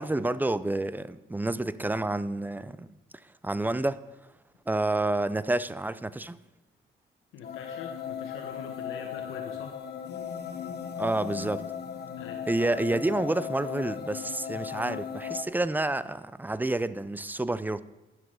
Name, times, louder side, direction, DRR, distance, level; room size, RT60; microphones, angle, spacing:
voice 1, 0.0-2.9 3.4-4.0 4.7-6.4 11.0-11.7 12.5-17.8, right 2 dB, 10° right, 0.5 m, -29 dB
voice 2, 7.3-9.7 12.2-12.5, left 7 dB, 90° left, 1.2 m, -43 dB
sound 1, 7.4-15.4, left 8 dB, 55° left, 1.1 m, -37 dB
11.0 x 7.3 x 6.4 m
cardioid pair, 90°, 20 cm